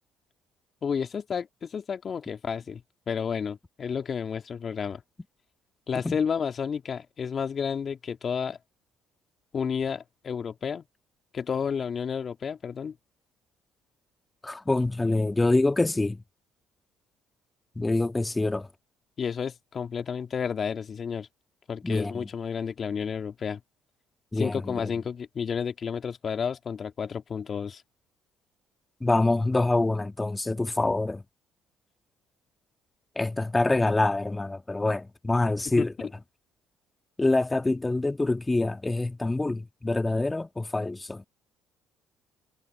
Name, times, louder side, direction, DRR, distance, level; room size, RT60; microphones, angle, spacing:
voice 1, 0.8-2.8 3.1-5.0 5.9-8.6 9.5-10.8 11.3-13.0 19.2-21.3 21.7-23.6 24.4-27.8 30.9-31.0 35.8-36.1, left 6 dB, 45° left, 2.4 m, -31 dB
voice 2, 14.4-16.2 17.8-18.7 21.8-22.3 24.3-24.9 29.0-31.2 33.2-36.1 37.2-41.2, left 2 dB, 20° left, 1.8 m, -26 dB
hypercardioid pair, 60°, 0 cm